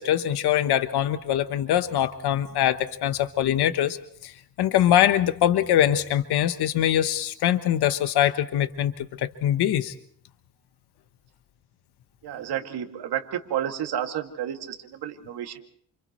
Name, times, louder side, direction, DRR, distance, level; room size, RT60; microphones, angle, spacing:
voice 1, 0.0-4.0 4.2-4.3 4.6-9.9, left 11 dB, 80° left, 10 dB, 1.2 m, -23 dB
voice 2, 12.2-15.6, right 10 dB, 80° right, 4 dB, 2.4 m, -31 dB
29.5 x 28.0 x 3.1 m, 0.64 s
cardioid pair, 115°, 39 cm